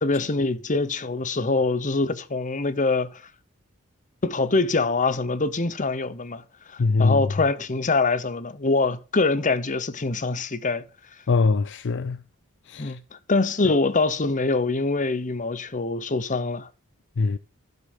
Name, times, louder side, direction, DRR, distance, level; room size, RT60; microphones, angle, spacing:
voice 1, 0.0-3.1 4.2-6.4 6.7-10.8 12.8-13.0 13.3-16.7, left 3 dB, 35° left, 0.9 m, -24 dB
voice 2, 6.8-7.2 11.3-12.2 12.7-13.0 17.2-17.4, left 3 dB, 55° left, 0.5 m, -22 dB
12.0 x 6.5 x 7.3 m
head